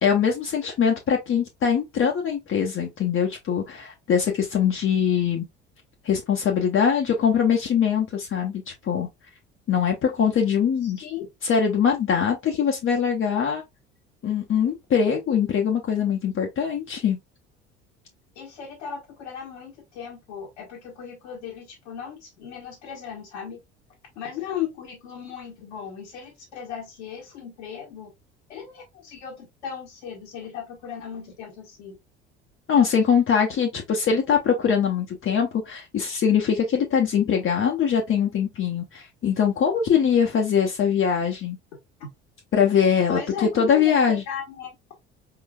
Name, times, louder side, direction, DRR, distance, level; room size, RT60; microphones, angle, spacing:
voice 1, 0.0-5.5 6.0-9.1 9.7-11.0 11.4-13.6 14.2-17.2 32.7-41.6 42.5-44.2, left 7 dB, 40° left, 0.9 m, -22 dB
voice 2, 10.8-11.2 18.3-23.6 24.1-28.1 28.5-31.9 42.0-42.1 43.1-44.7, left 8 dB, 75° left, 1.4 m, -36 dB
4.3 x 3.8 x 2.3 m
hypercardioid pair, 60°, 34 cm